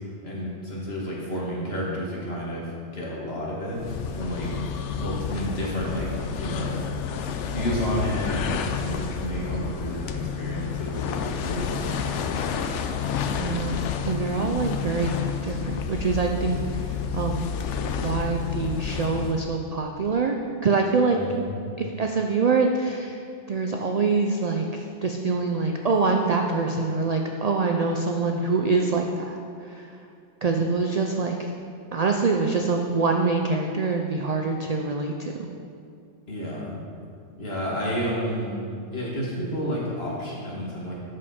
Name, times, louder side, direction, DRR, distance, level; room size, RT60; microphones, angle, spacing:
voice 1, 0.2-2.6 2.9-3.8 4.1-4.5 4.9-6.1 6.4-6.8 7.5-12.0 21.1-21.6 36.3-36.8 37.4-40.9, equal, 55° left, -5 dB, 2.0 m, -30 dB
sound 1, 3.7-19.5, left 6 dB, 70° left, 0.9 m, -30 dB
voice 2, 13.3-13.8 14.1-15.1 15.4-16.6 17.1-17.5 18.0-20.4 20.6-21.2 21.8-23.1 23.5-29.4 30.4-31.4 31.9-35.3, right 4 dB, 55° right, 2 dB, 0.4 m, -24 dB
12.5 x 5.1 x 4.2 m, 2.4 s
omnidirectional pair, 1.3 m